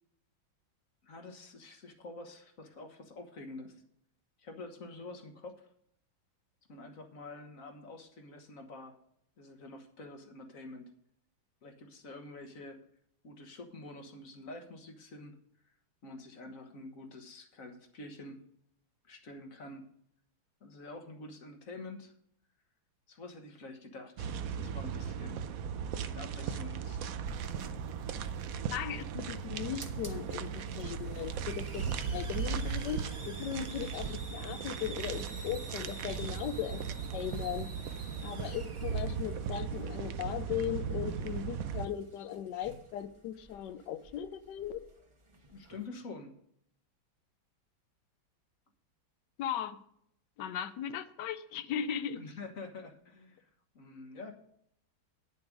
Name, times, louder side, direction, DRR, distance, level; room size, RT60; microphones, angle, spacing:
voice 1, 1.0-3.8 4.4-5.7 6.7-9.0 9.4-10.9 11.6-12.8 13.2-15.4 16.0-18.4 19.0-19.8 20.6-22.1 23.1-25.5 26.1-27.0 45.5-46.3 52.1-53.5 53.7-54.3, left 2 dB, 45° left, 5 dB, 1.4 m, -47 dB
sound 1, 24.2-41.9, right 7 dB, 75° right, 0.8 m, -37 dB
sound 2, 27.2-34.3, right 1 dB, 55° right, 1.9 m, -52 dB
Hiss, 28.0-45.9, right 2 dB, 20° right, 0.8 m, -51 dB
voice 2, 28.7-36.8 37.1-37.7 38.2-44.9 49.4-49.8 50.4-52.2, left 9 dB, 70° left, 13 dB, 1.1 m, -38 dB
9.7 x 7.1 x 5.1 m, 0.69 s
omnidirectional pair, 2.2 m